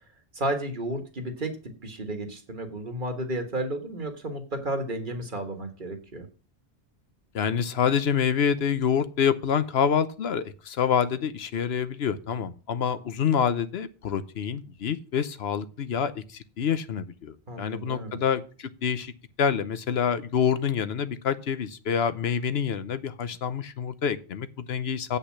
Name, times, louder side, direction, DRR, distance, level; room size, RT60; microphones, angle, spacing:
voice 1, 0.3-6.3 17.5-18.2, right 1 dB, 50° right, 6 dB, 1.7 m, -32 dB
voice 2, 7.3-19.1 19.4-25.2, left 7 dB, 70° left, 13 dB, 1.0 m, -27 dB
8.4 x 5.6 x 7.4 m, 0.36 s
omnidirectional pair, 1.1 m